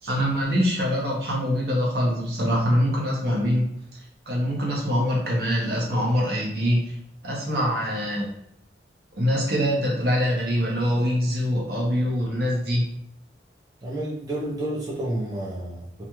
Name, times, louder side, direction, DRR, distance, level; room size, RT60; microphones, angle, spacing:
voice 1, 0.0-3.7 4.3-7.0 7.2-8.3 9.1-12.9, equal, 60° right, -3 dB, 0.8 m, -24 dB
voice 2, 13.8-16.1, right 1 dB, 20° right, -8 dB, 0.5 m, -30 dB
2.4 x 2.3 x 2.9 m, 0.73 s
head